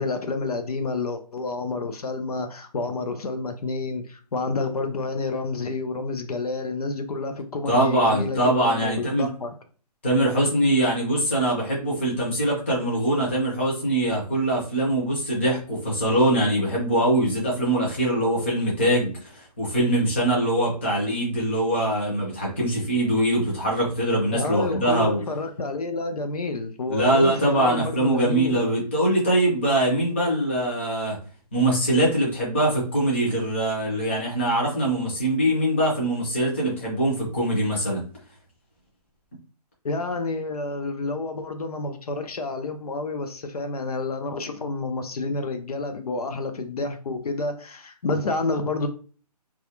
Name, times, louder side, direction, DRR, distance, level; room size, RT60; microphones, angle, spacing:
voice 1, 0.0-9.5 24.3-28.6 39.8-48.9, left 3 dB, 65° left, 7 dB, 0.5 m, -29 dB
voice 2, 7.7-9.3 10.0-25.2 26.9-31.2 31.5-38.0, right 1 dB, 15° left, -3 dB, 0.6 m, -23 dB
2.3 x 2.0 x 2.9 m, 0.39 s
hypercardioid pair, 170°, 21 cm